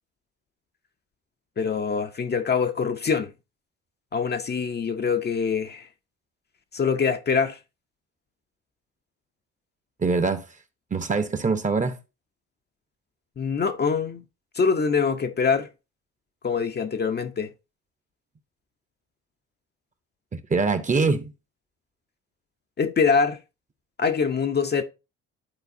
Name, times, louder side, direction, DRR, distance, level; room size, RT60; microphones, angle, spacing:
voice 1, 1.6-3.3 4.1-5.8 6.7-7.6 13.4-14.2 14.6-15.7 16.4-17.5 22.8-23.4 24.0-24.8, left 5 dB, 30° left, 0.7 m, -24 dB
voice 2, 10.0-10.4 10.9-12.0 20.3-21.3, right 4 dB, 25° right, 0.9 m, -23 dB
11.0 x 3.9 x 2.7 m
supercardioid pair, 75°, 31 cm